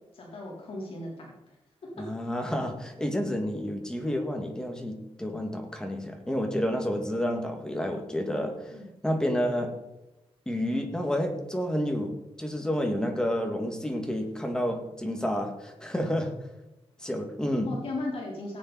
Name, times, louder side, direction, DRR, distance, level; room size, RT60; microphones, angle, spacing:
voice 1, 0.1-1.6 1.8-2.1 8.7-8.9 17.7-18.6, left 2 dB, 60° left, -3 dB, 3.5 m, -37 dB
voice 2, 2.0-8.7 9.0-9.8 10.5-16.5 17.0-17.7, equal, 5° left, 3 dB, 2.0 m, -30 dB
18.0 x 8.8 x 4.1 m, 0.97 s
wide cardioid pair, 135°, 11 cm